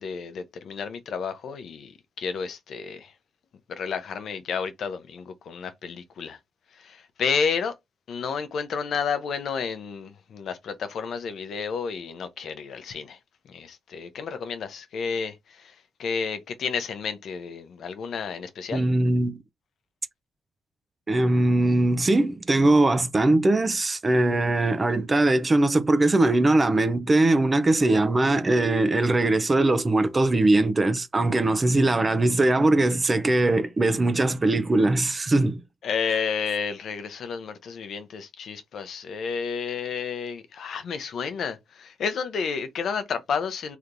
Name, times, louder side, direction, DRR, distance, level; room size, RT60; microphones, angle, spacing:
voice 1, 0.0-1.9 2.2-3.1 3.8-6.4 6.8-7.7 8.1-13.2 13.5-15.3 16.0-18.9 35.8-43.8, left 6 dB, 60° left, 0.6 m, -31 dB
voice 2, 18.7-19.4 21.1-35.6, right 2 dB, 25° right, 0.4 m, -21 dB
3.3 x 2.8 x 2.5 m
cardioid pair, 90°, 0 cm